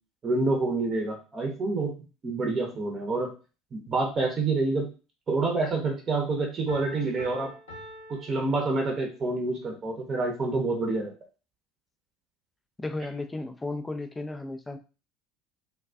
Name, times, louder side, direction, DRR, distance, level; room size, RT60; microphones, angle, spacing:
voice 1, 0.2-1.9 2.2-3.3 3.7-4.9 5.3-7.5 8.1-11.1, right 3 dB, 30° right, 1 dB, 0.7 m, -27 dB
Piano, 6.7-9.3, equal, 75° left, 0.8 m, -45 dB
voice 2, 12.8-14.8, left 2 dB, 15° left, 8 dB, 0.3 m, -34 dB
2.3 x 2.3 x 2.3 m, 0.33 s
figure-of-eight pair, 70°, 0 cm